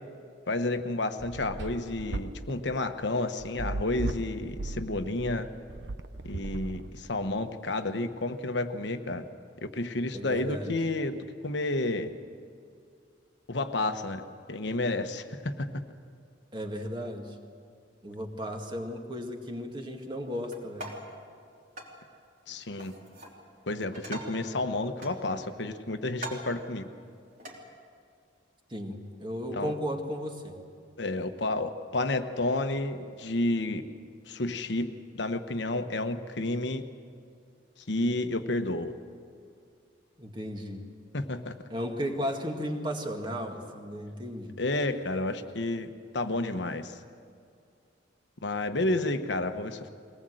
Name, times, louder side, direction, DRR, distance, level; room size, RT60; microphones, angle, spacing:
voice 1, 0.5-5.5 6.2-9.2 9.6-11.2 11.4-12.1 13.5-15.7 22.5-22.9 23.7-26.9 29.5-29.8 31.0-33.8 34.3-36.8 37.8-38.9 41.1-41.5 44.6-47.0 48.4-49.9, left 2 dB, 70° left, 8 dB, 1.1 m, -31 dB
sound 1, 1.2-7.3, right 2 dB, 75° right, 0.9 m, -36 dB
voice 2, 10.1-10.7 16.5-17.4 18.0-20.9 28.7-30.6 40.2-40.9 41.7-44.6, equal, 25° right, 3 dB, 2.0 m, -35 dB
sound 2, 20.5-21.2 21.8-22.0 22.8-23.4 23.8-24.5 25.0-25.7 26.1-26.6 27.4-27.6, right 1 dB, 45° right, 3.4 m, -42 dB
22.5 x 19.0 x 7.8 m, 2.3 s
head